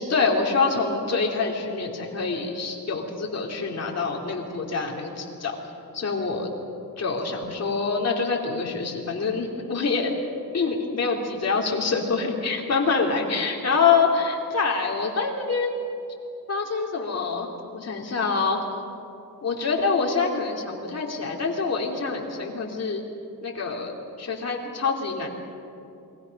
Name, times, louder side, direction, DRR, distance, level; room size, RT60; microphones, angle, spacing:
voice 1, 0.0-5.6 5.9-6.5 7.0-10.1 10.5-15.7 16.5-18.6 19.4-23.0 23.4-23.9 24.2-25.3, left 4 dB, 45° left, 0 dB, 3.0 m, -25 dB
28.5 x 22.0 x 5.4 m, 2.7 s
wide cardioid pair, 160°, 36 cm